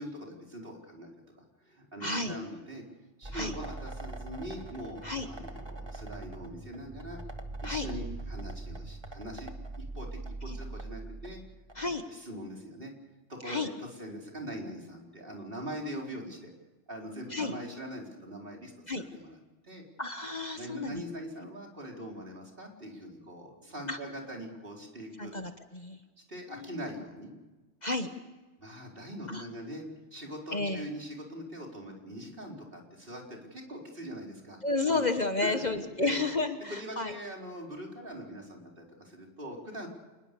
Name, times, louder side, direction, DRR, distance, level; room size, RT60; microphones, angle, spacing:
voice 1, 0.0-2.8 3.2-7.2 7.6-9.5 9.8-11.4 12.1-12.9 13.3-16.5 16.9-18.7 19.1-19.4 19.6-19.8 20.6-25.3 26.3-27.3 28.6-29.8 30.1-34.6 34.9-35.0 35.4-36.2 36.7-39.9, equal, 45° right, 0 dB, 4.6 m, -42 dB
voice 2, 2.0-2.3 3.3-3.5 5.0-5.3 7.6-7.9 10.4-10.6 11.7-12.0 13.4-13.7 17.3-17.5 18.9-19.0 20.0-21.0 23.9-24.0 25.2-26.0 26.5-26.8 27.8-28.1 29.3-29.5 30.5-30.8 34.6-37.1, left 3 dB, 35° left, 7 dB, 1.4 m, -32 dB
sound 1, 3.2-11.9, right 2 dB, 20° right, 1.7 m, -42 dB
28.0 x 20.5 x 6.9 m, 1.2 s
omnidirectional pair, 1.2 m